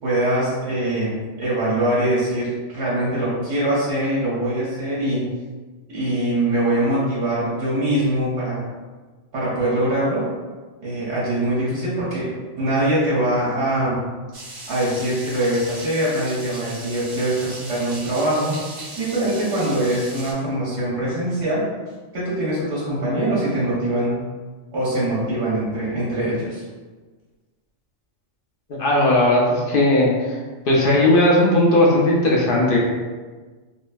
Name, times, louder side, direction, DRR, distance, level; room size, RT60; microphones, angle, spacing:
voice 1, 0.0-5.3 5.9-8.6 9.3-10.2 10.8-14.0 14.7-18.6 19.0-21.6 22.1-24.2 24.7-26.6, right 1 dB, 80° right, -10 dB, 1.4 m, -23 dB
sound 1, 14.3-20.3, right 2 dB, 55° right, 0.8 m, -37 dB
voice 2, 28.7-30.4 30.7-32.8, left 1 dB, 55° left, -3 dB, 0.7 m, -17 dB
3.9 x 2.0 x 2.3 m, 1.4 s
omnidirectional pair, 1.3 m